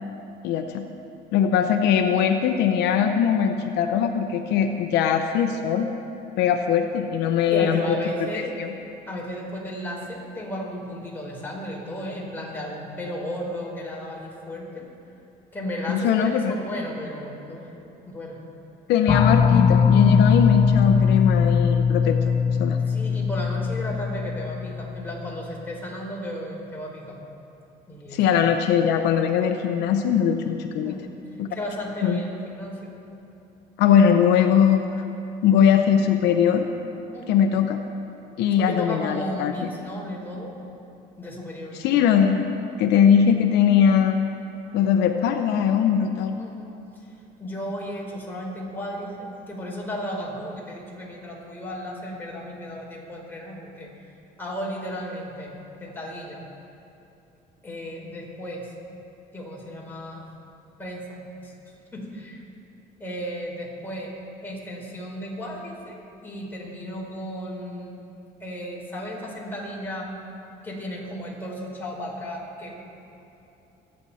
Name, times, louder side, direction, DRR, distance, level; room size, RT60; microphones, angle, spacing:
voice 1, 0.4-0.9 1.3-5.9 6.4-7.8 8.3-8.7 15.9-16.5 18.9-22.2 22.6-22.8 28.1-31.0 31.4-31.5 32.0-32.2 33.8-35.0 35.4-36.7 37.3-37.8 38.4-39.5 41.8-44.3 44.7-46.3, left 8 dB, 85° left, 6 dB, 0.8 m, -20 dB
voice 2, 7.5-8.7 9.1-14.8 15.5-17.7 18.1-18.4 22.8-27.2 27.9-28.5 30.8-31.0 31.5-32.9 37.1-37.4 38.6-40.6 41.2-42.0 46.4-46.7 47.4-49.2 49.5-53.9 54.4-55.5 55.8-56.4 57.6-58.7 59.3-60.3 60.8-61.5 61.9-62.4 63.0-64.1 64.4-67.9 68.4-70.1 70.6-72.8, equal, 10° left, -4 dB, 4.5 m, -34 dB
sound 1, 19.1-25.4, left 6 dB, 35° left, 0.5 m, -21 dB
27.0 x 9.8 x 4.3 m, 2.9 s
cardioid pair, 110°, 17 cm